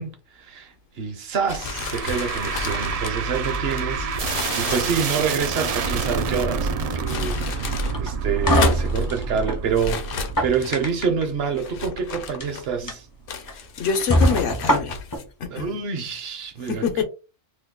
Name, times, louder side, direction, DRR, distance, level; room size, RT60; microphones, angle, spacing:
voice 1, 0.0-6.7 7.0-13.1 15.5-17.0, right 6 dB, 60° right, 0.9 m, -27 dB
sound 1, 1.5-6.2 6.8-8.0 8.3-9.1 9.7-10.9 11.5-12.8 13.3-15.3, left 6 dB, 60° left, 0.7 m, -33 dB
sound 2, 1.6-12.9, right 5 dB, 80° right, 0.3 m, -28 dB
sound 3, 7.9-9.6 10.2-11.2 12.2-12.5 12.9-13.0 13.5-13.6 14.1-15.2, equal, 25° left, 0.4 m, -22 dB
voice 2, 13.4-15.0 15.4-15.7 16.6-17.0, left 6 dB, 85° left, 1.1 m, -26 dB
2.9 x 2.2 x 3.6 m
omnidirectional pair, 1.2 m